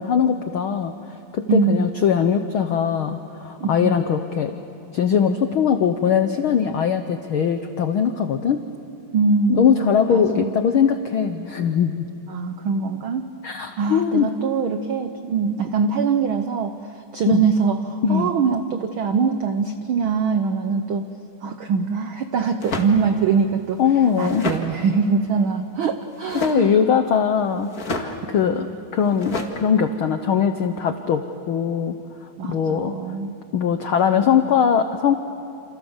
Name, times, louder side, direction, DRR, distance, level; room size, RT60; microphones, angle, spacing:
voice 1, 0.0-4.6 4.9-8.6 9.5-12.1 13.4-14.3 17.2-17.4 18.0-18.3 23.8-24.5 26.4-31.2 31.5-32.0 32.4-32.9 33.5-35.2, left 7 dB, 80° left, 8 dB, 1.1 m, -21 dB
voice 2, 1.5-1.9 3.6-4.0 9.1-10.5 12.3-13.3 13.8-21.1 21.4-26.7 28.6-28.7 32.4-33.3, right 5 dB, 85° right, 8 dB, 1.1 m, -23 dB
sound 1, 22.6-22.9 24.0-24.7 26.2-26.7 27.6-28.1 29.2-29.5, left 3 dB, 35° left, 2.0 m, -29 dB
28.5 x 28.0 x 7.2 m, 2.7 s
omnidirectional pair, 3.6 m